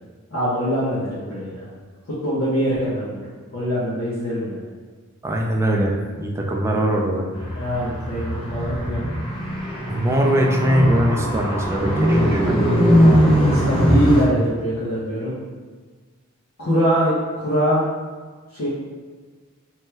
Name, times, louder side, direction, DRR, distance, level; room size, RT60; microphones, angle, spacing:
voice 1, 0.3-1.7 2.1-4.6 7.5-9.0 13.0-15.3 16.6-17.8 18.5-18.7, equal, 80° left, -10 dB, 0.7 m, -23 dB
voice 2, 5.2-7.3 9.9-12.6, right 1 dB, 15° right, 0 dB, 0.3 m, -21 dB
Car, 7.3-14.2, equal, 25° left, 0.6 m, -20 dB
3.0 x 2.2 x 3.2 m, 1.4 s
head